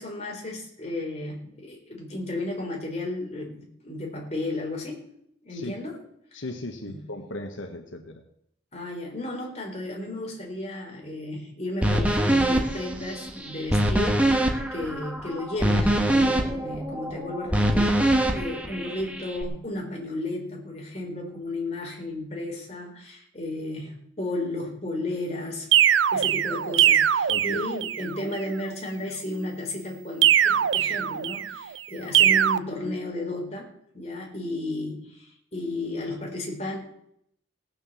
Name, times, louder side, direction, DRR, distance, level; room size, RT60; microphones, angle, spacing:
voice 1, 0.0-5.0 5.4-6.0 6.8-7.0 8.7-25.7 26.1-36.8, left 2 dB, 35° left, -1 dB, 3.8 m, -34 dB
voice 2, 6.3-8.2 27.3-27.6, left 2 dB, 85° left, 5 dB, 1.3 m, -37 dB
sound 1, 11.8-19.4, right 1 dB, 5° right, 1.4 m, -24 dB
sound 2, 25.7-28.1 30.2-31.6 32.1-32.6, right 10 dB, 75° right, 0.5 m, -21 dB
18.0 x 6.7 x 7.1 m, 0.72 s
head